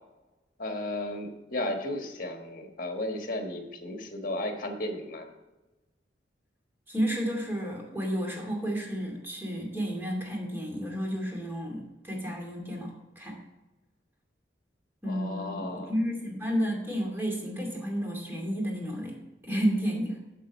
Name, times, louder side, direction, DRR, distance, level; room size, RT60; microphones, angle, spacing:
voice 1, 0.6-5.3 15.0-15.9, left 1 dB, 50° left, 4 dB, 1.4 m, -34 dB
voice 2, 6.9-13.4 15.0-19.2 19.5-20.2, equal, 15° right, -1 dB, 2.3 m, -31 dB
7.7 x 7.3 x 5.3 m, 1.1 s
head